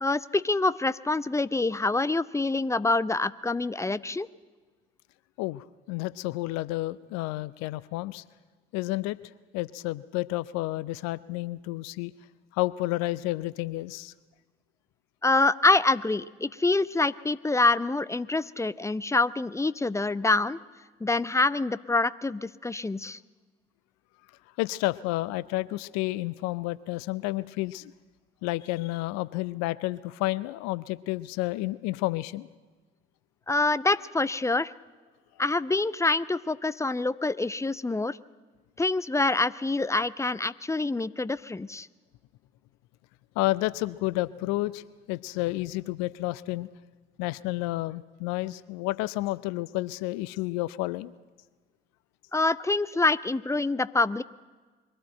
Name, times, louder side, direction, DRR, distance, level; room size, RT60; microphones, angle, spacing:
voice 1, 0.0-4.3 15.2-20.6 21.0-23.2 33.5-34.7 35.4-38.2 38.8-41.9 52.3-54.2, left 3 dB, 10° left, 17 dB, 0.5 m, -26 dB
voice 2, 5.4-8.2 8.7-9.2 9.5-12.1 12.5-14.1 24.6-27.9 28.4-32.5 43.4-46.7 47.2-51.1, left 18 dB, 60° left, 19 dB, 0.6 m, -30 dB
22.0 x 13.5 x 8.9 m, 1.4 s
figure-of-eight pair, 50°, 30 cm